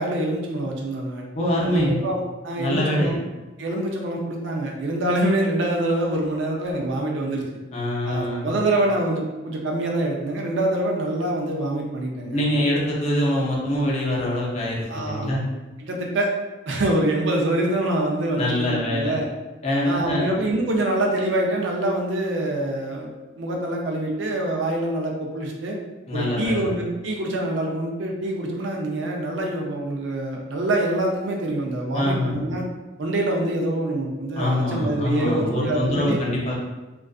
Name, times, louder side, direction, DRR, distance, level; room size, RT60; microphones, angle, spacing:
voice 1, 0.0-1.2 1.6-3.2 3.6-7.4 8.0-12.4 14.9-15.3 15.8-16.3 16.7-19.3 19.8-23.1 23.4-25.8 26.1-32.6 33.0-36.2, right 1 dB, 70° right, 0 dB, 0.5 m, -25 dB
voice 2, 1.4-2.0 2.6-3.1 7.7-8.6 12.3-15.4 18.4-19.1 19.6-20.3 26.1-26.7 31.9-32.5 34.4-36.5, left 1 dB, 35° left, -4 dB, 0.6 m, -24 dB
2.4 x 2.3 x 2.3 m, 1.1 s
head